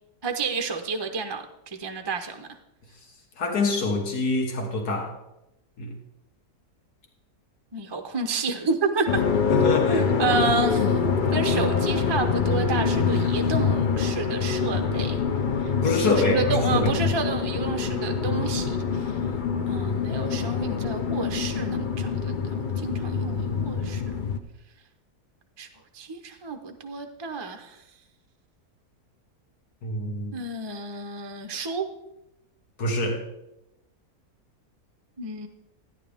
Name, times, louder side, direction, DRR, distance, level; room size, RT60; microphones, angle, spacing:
voice 1, 0.2-2.5 7.7-9.2 9.9-11.0 11.3-15.2 15.6-19.2 19.7-24.2 25.6-25.7 25.9-27.8 30.3-31.9 35.2-35.5, right 4 dB, 30° right, 5 dB, 0.5 m, -30 dB
voice 2, 3.4-5.2 5.8-5.9 9.5-10.1 15.8-16.9 29.8-30.3 32.8-33.2, left 3 dB, 75° left, 3 dB, 2.1 m, -25 dB
sound 1, 9.1-24.4, left 5 dB, 50° left, 0.6 m, -25 dB
13.0 x 10.0 x 3.5 m, 0.88 s
omnidirectional pair, 1.7 m